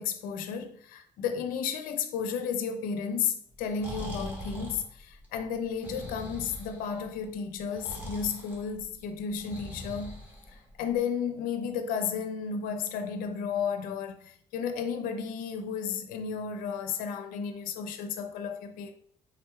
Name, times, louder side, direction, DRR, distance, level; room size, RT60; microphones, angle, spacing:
voice 1, 0.0-10.1 10.8-18.9, left 6 dB, 90° left, 0.5 m, -33 dB
Breathing, 3.5-10.9, equal, 15° right, 1.6 m, -42 dB
4.5 x 3.6 x 2.2 m
cardioid pair, 75°, 14 cm